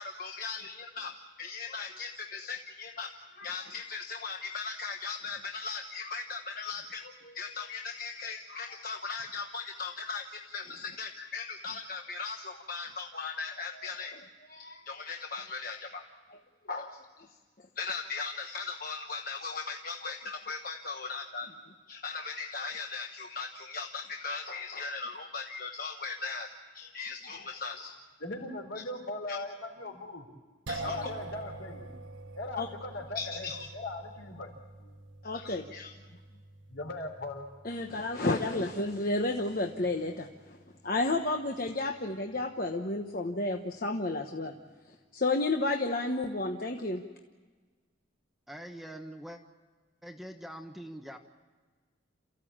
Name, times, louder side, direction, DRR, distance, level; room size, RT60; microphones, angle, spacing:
voice 1, 0.0-16.0 16.3-16.4 16.7-17.3 17.8-28.0 29.3-29.4 30.7-31.1 32.6-32.7 33.1-33.7 35.2-35.9 37.6-40.6 40.8-44.5 44.9-47.0, left 3 dB, 45° left, 3 dB, 1.1 m, -35 dB
voice 2, 28.2-30.3 30.8-31.9 32.3-34.5 34.8-35.0 36.7-37.5, left 2 dB, 70° left, 2 dB, 3.9 m, -39 dB
sound 1, 30.7-43.0, right 2 dB, 80° right, 1.3 m, -47 dB
voice 3, 48.5-49.4 50.0-51.2, equal, ahead, 4 dB, 1.0 m, -43 dB
28.5 x 15.0 x 8.8 m, 1.4 s
head